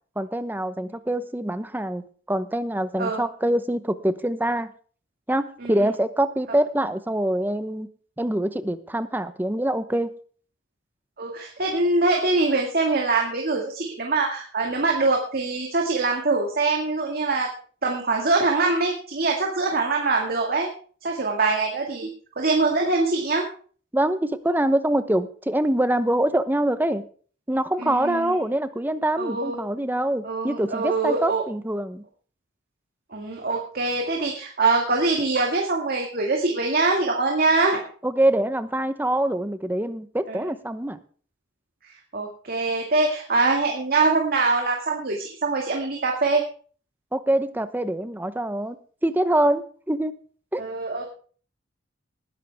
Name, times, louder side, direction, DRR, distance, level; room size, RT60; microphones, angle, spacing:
voice 1, 0.2-2.0 2.3-4.7 5.3-7.9 8.2-10.1 23.9-27.0 27.5-32.0 38.0-41.0 47.1-48.8 49.0-50.1 50.5-50.6, right 1 dB, 10° right, 12 dB, 0.8 m, -24 dB
voice 2, 11.2-17.5 17.8-20.7 21.0-22.1 22.4-23.5 27.8-28.3 29.2-29.6 30.2-31.4 33.1-37.8 40.3-40.4 42.1-46.4 50.6-51.1, right 3 dB, 55° right, 1 dB, 2.1 m, -23 dB
19.5 x 10.5 x 3.5 m, 0.43 s
head